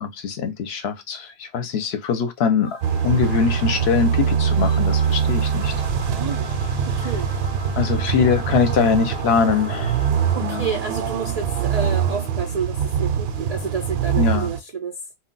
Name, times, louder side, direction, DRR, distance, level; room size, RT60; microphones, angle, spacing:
voice 1, 0.0-2.8 3.0-5.7 7.8-10.0 10.4-10.7 14.2-14.5, left 6 dB, 65° left, 0.8 m, -22 dB
sound 1, 2.6-10.9, left 3 dB, 30° left, 0.5 m, -41 dB
sound 2, 2.8-14.6, right 7 dB, 65° right, 0.7 m, -23 dB
voice 2, 6.1-6.5 6.9-7.3 10.3-15.0, right 6 dB, 90° right, 0.3 m, -29 dB
2.2 x 2.2 x 3.7 m
omnidirectional pair, 1.2 m